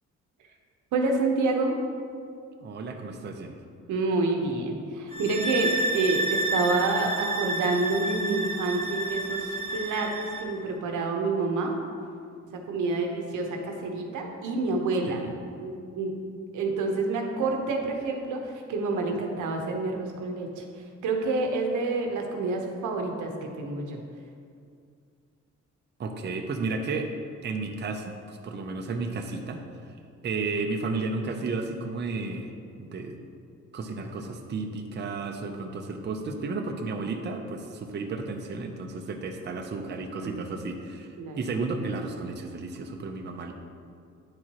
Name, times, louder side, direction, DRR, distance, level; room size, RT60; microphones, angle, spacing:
voice 1, 0.9-1.8 3.9-11.8 12.5-15.2 15.6-16.1 16.5-20.6 21.0-24.0 40.2-40.4 41.2-41.4, right 3 dB, 80° right, 2 dB, 1.0 m, -28 dB
voice 2, 2.6-3.5 15.1-15.4 26.0-27.1 27.4-29.6 30.2-32.5 32.8-33.2 33.7-43.5, right 3 dB, 35° right, 2 dB, 0.6 m, -33 dB
sound 1, 5.1-10.5, right 2 dB, 20° left, 1.3 m, -30 dB
9.6 x 4.6 x 3.0 m, 2.3 s
cardioid pair, 90°, 30 cm